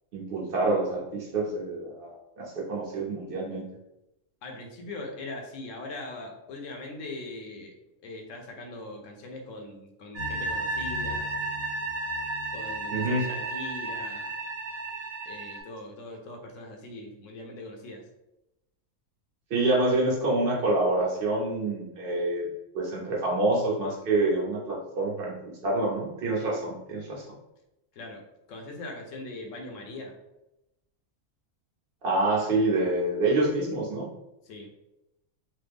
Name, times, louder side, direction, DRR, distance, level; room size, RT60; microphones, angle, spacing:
voice 1, 0.1-3.6 12.9-13.2 19.5-22.5 22.7-27.2 32.0-34.1, right 2 dB, 50° right, -3 dB, 1.0 m, -27 dB
voice 2, 4.4-7.7 8.0-11.3 12.5-14.3 15.3-18.0 27.9-30.2 34.4-34.7, left 2 dB, 70° left, 2 dB, 1.0 m, -41 dB
sound 1, 10.1-15.6, right 2 dB, 85° right, 1.2 m, -33 dB
3.3 x 2.1 x 3.4 m, 0.91 s
omnidirectional pair, 1.4 m